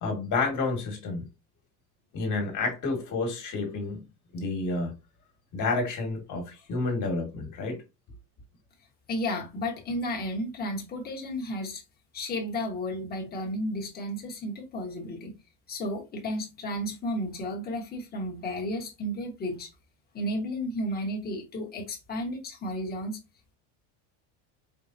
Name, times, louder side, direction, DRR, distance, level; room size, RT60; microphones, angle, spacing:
voice 1, 0.0-1.2 2.1-4.0 4.3-4.9 5.5-7.8, left 3 dB, 40° left, 1.7 m, -30 dB
voice 2, 9.1-11.8 12.1-15.3 15.7-19.7 20.1-23.2, left 1 dB, 20° left, 1.3 m, -33 dB
4.8 x 3.5 x 2.6 m
cardioid pair, 150°, 45 cm